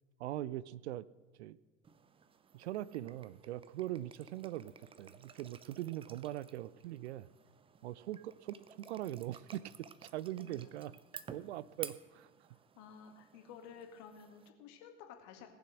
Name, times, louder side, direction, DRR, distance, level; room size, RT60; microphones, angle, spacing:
voice 1, 0.2-1.0 1.4-1.6 2.5-4.7 5.0-7.3 7.8-9.7 10.0-10.9 11.3-12.3, right 14 dB, 65° right, 20 dB, 0.5 m, -41 dB
sound 1, 1.8-14.5, right 6 dB, 15° right, 0.5 m, -54 dB
voice 2, 10.4-10.9 12.5-15.5, left 7 dB, 50° left, 5 dB, 2.1 m, -53 dB
18.5 x 7.0 x 6.4 m, 1.4 s
figure-of-eight pair, 75°, 37 cm